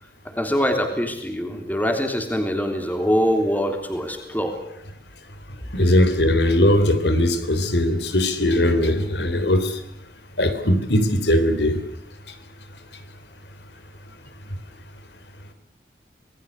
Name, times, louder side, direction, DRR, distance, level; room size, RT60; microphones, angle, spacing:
voice 1, 0.3-4.6, equal, 10° left, 5 dB, 3.4 m, -23 dB
voice 2, 5.7-9.8 10.4-11.8, left 1 dB, 75° left, 10 dB, 3.4 m, -19 dB
26.5 x 20.5 x 8.1 m, 0.73 s
head